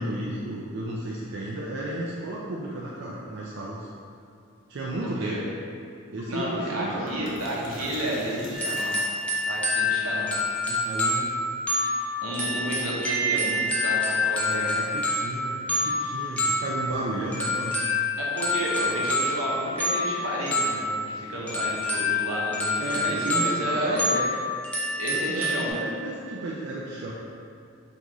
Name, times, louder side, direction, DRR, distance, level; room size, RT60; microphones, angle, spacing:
voice 1, 0.0-3.9 4.7-5.5 6.1-7.4 7.7-7.8 10.7-11.4 14.4-17.8 22.8-24.3 25.1-27.1, right 1 dB, 55° right, -5 dB, 0.4 m, -33 dB
sound 1, 6.2-6.3 6.5-9.6, left 1 dB, 60° left, 0.7 m, -42 dB
voice 2, 6.3-8.9 9.5-10.3 12.2-14.7 18.2-24.0 25.0-25.8, right 1 dB, 80° right, -5 dB, 0.9 m, -31 dB
sound 2, 8.5-25.7, left 2 dB, 5° left, 0.5 m, -27 dB
3.8 x 3.6 x 3.0 m, 2.4 s
head